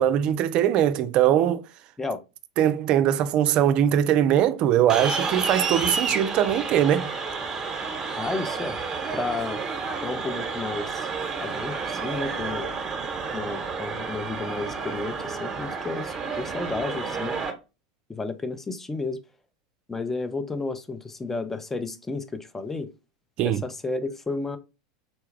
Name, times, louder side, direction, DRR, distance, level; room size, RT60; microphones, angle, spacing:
voice 1, 0.0-1.6 2.6-7.1 23.4-23.6, right 10 dB, 45° right, 0.4 m, -21 dB
sound 1, 4.9-17.5, right 4 dB, 25° right, 1.1 m, -30 dB
voice 2, 8.1-8.8 9.1-9.6 10.0-11.1 11.4-12.7 13.3-17.4 18.1-19.2 19.9-22.9 23.4-24.6, left 3 dB, 15° left, 0.5 m, -32 dB
4.1 x 2.3 x 3.2 m
hypercardioid pair, 95°, 2 cm